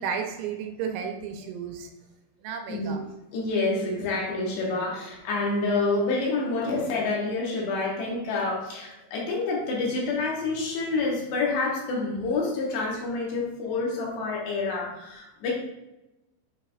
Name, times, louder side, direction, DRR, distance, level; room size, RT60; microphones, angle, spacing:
voice 1, 0.0-1.9 2.4-3.0, right 7 dB, 85° right, 4 dB, 3.0 m, -33 dB
voice 2, 2.7-3.0 3.3-15.5, left 3 dB, 75° left, -3 dB, 3.3 m, -28 dB
7.8 x 5.6 x 2.5 m, 0.96 s
omnidirectional pair, 5.3 m